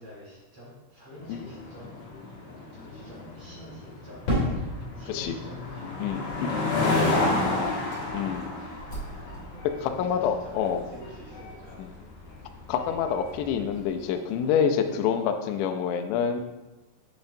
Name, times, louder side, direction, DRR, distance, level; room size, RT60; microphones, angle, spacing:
voice 1, 0.0-1.9 2.3-4.3 4.9-6.4 9.8-11.9, equal, 50° right, -7 dB, 1.7 m, -47 dB
sound 1, 1.2-14.7, left 2 dB, 65° left, 2.8 m, -32 dB
Fireworks, 4.3-8.6 8.9-9.7, equal, 40° left, 3.2 m, -34 dB
voice 2, 6.0-6.5 8.1-8.6 9.8-10.9 11.8-11.9 12.7-16.4, left 7 dB, 80° left, 6 dB, 2.7 m, -27 dB
Engine, 7.8-14.1, left 1 dB, 80° right, 0.5 m, -49 dB
7.7 x 7.1 x 2.7 m, 1.1 s
omnidirectional pair, 5.5 m